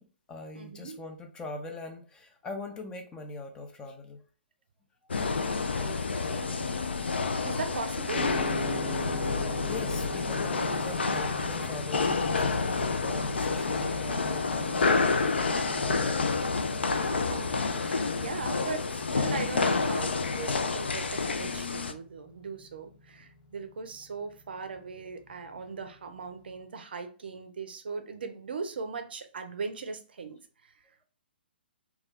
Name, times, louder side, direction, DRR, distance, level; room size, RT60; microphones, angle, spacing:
voice 1, 0.0-4.2 9.2-9.3 9.6-15.2 15.6-16.6, left 2 dB, 15° left, 3 dB, 0.4 m, -42 dB
voice 2, 0.5-1.0 5.8-6.0 6.2-6.7 7.4-8.3 17.0-30.4 30.6-30.7, right 4 dB, 65° right, 7 dB, 0.5 m, -39 dB
sound 1, 5.1-21.9, left 4 dB, 75° left, 0.4 m, -29 dB
sound 2, 8.1-26.3, right 1 dB, 50° left, 1.0 m, -43 dB
2.3 x 2.3 x 3.4 m, 0.39 s
figure-of-eight pair, 125°, 6 cm